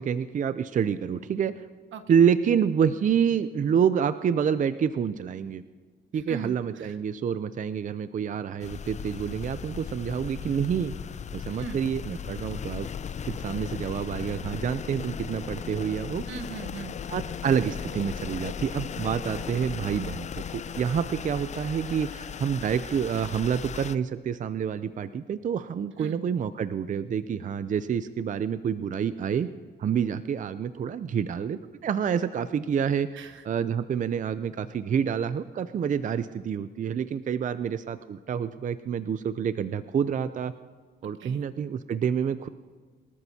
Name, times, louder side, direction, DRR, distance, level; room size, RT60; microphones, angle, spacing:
voice 1, 0.0-1.6 2.1-5.6 6.1-10.9 11.3-12.9 13.2-16.2 17.1-20.3 20.5-29.5 29.8-33.1 33.4-40.5 41.0-42.5, right 7 dB, 40° right, 13 dB, 0.5 m, -28 dB
voice 2, 6.1-7.0 11.5-11.8 16.3-17.0 26.0-26.2 33.1-33.4 41.2-41.4, right 6 dB, 75° right, 8 dB, 1.1 m, -40 dB
sound 1, 8.6-23.9, left 7 dB, 35° left, 0.5 m, -37 dB
23.5 x 13.5 x 2.8 m, 1.5 s
cardioid pair, 90°, 20 cm